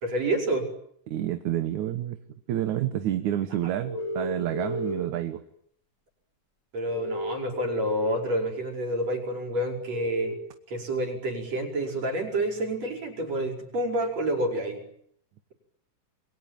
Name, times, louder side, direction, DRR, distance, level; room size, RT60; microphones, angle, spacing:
voice 1, 0.0-0.7 3.9-4.0 6.7-10.3 10.7-14.8, right 1 dB, 50° right, 3 dB, 6.2 m, -28 dB
voice 2, 1.1-2.2 2.5-5.4, right 12 dB, 65° right, 9 dB, 2.6 m, -29 dB
sound 1, 3.9-4.9 6.9-7.9 9.9-10.3, equal, 25° left, 5.7 m, -32 dB
28.0 x 22.5 x 9.1 m, 0.69 s
omnidirectional pair, 3.8 m